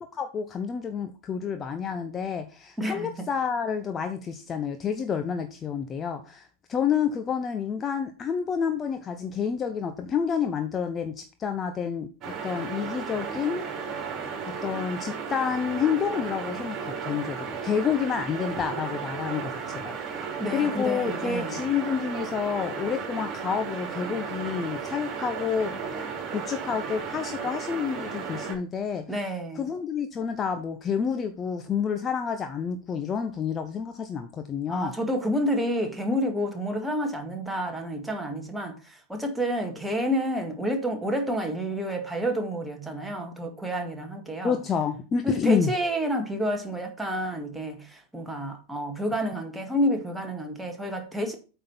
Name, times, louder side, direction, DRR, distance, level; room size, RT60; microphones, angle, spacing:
voice 1, 0.1-12.1 12.4-13.7 14.5-20.0 20.5-25.8 26.3-29.2 29.5-34.9 44.4-45.7, left 7 dB, 25° left, 0.8 m, -29 dB
voice 2, 2.8-3.1 20.4-21.6 29.1-29.7 34.7-44.6 45.2-51.3, equal, 5° right, 1.9 m, -29 dB
sound 1, 12.2-28.5, right 6 dB, 30° right, 3.2 m, -34 dB
8.6 x 5.6 x 4.2 m
figure-of-eight pair, 90°, 0 cm